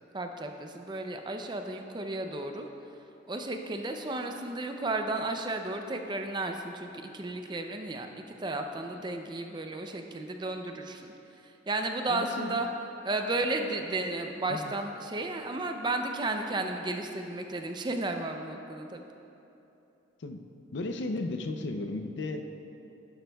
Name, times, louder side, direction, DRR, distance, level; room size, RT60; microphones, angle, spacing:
voice 1, 0.1-2.7 3.3-8.1 8.4-11.1 11.4-12.7 13.0-19.0, right 2 dB, 25° right, 5 dB, 0.5 m, -33 dB
voice 2, 12.1-12.7 14.5-14.8 20.2-20.4 20.7-22.5, left 2 dB, 65° left, 6 dB, 0.5 m, -35 dB
11.0 x 11.0 x 2.3 m, 2.9 s
head